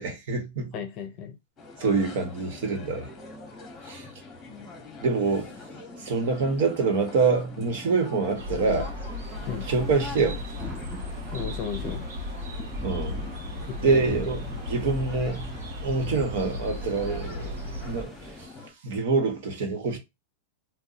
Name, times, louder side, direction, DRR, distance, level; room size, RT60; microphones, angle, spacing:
voice 1, 0.0-0.8 1.8-3.1 3.8-4.1 5.0-5.5 6.0-8.9 9.6-10.4 12.8-13.3 13.8-18.5 18.8-20.0, right 4 dB, 65° right, 1.2 m, -26 dB
voice 2, 0.7-1.4 9.5-9.6 11.3-12.1 13.7-14.3, left 7 dB, 40° left, 0.6 m, -34 dB
sound 1, 1.6-18.7, left 3 dB, 25° left, 1.0 m, -44 dB
sound 2, 8.3-18.0, left 1 dB, 90° right, 1.0 m, -36 dB
sound 3, 9.2-18.5, right 2 dB, 10° right, 0.6 m, -43 dB
2.7 x 2.2 x 3.9 m
supercardioid pair, 145°, 0 cm